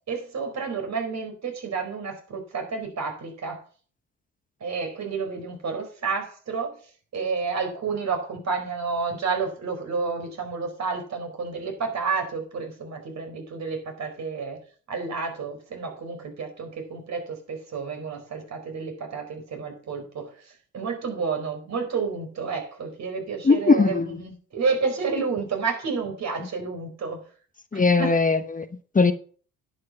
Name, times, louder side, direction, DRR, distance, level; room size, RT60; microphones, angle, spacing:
voice 1, 0.1-3.6 4.6-6.7 7.1-14.6 14.9-27.2 27.7-28.2, right 5 dB, 55° right, 4.5 m, -30 dB
voice 2, 23.4-24.1 27.7-28.7 28.9-29.1, left 4 dB, 25° left, 1.1 m, -19 dB
10.5 x 6.9 x 5.8 m
hypercardioid pair, 55°, 32 cm